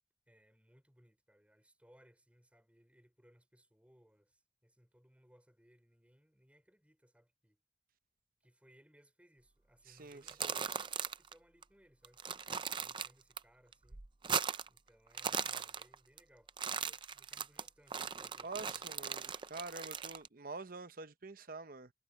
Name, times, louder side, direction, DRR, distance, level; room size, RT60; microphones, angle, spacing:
voice 1, 0.3-7.6 8.4-12.2 12.7-14.0 14.7-18.9, equal, 5° right, 5.7 m, -67 dB
voice 2, 9.9-10.6 18.4-21.9, right 3 dB, 45° right, 0.8 m, -47 dB
sound 1, 10.1-11.3 11.6-11.7 12.0-13.4 13.7-14.8 15.1-16.2 16.5-20.3, right 7 dB, 25° right, 0.5 m, -38 dB
head